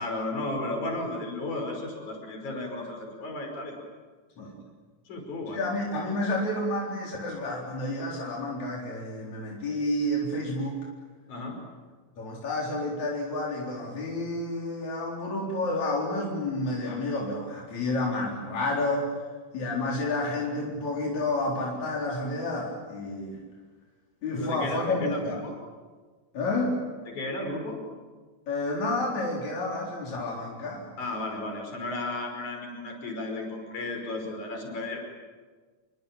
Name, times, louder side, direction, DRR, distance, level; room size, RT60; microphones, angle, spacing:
voice 1, 0.0-3.8 4.4-4.5 5.1-5.6 11.3-11.6 24.4-25.5 27.1-27.8 31.0-35.0, left 2 dB, 90° left, 3 dB, 6.9 m, -34 dB
voice 2, 5.5-10.8 12.2-19.2 19.5-23.4 24.2-25.4 26.3-26.8 28.5-30.9, left 2 dB, 70° left, -3 dB, 5.6 m, -30 dB
28.5 x 24.0 x 8.8 m, 1.4 s
omnidirectional pair, 3.3 m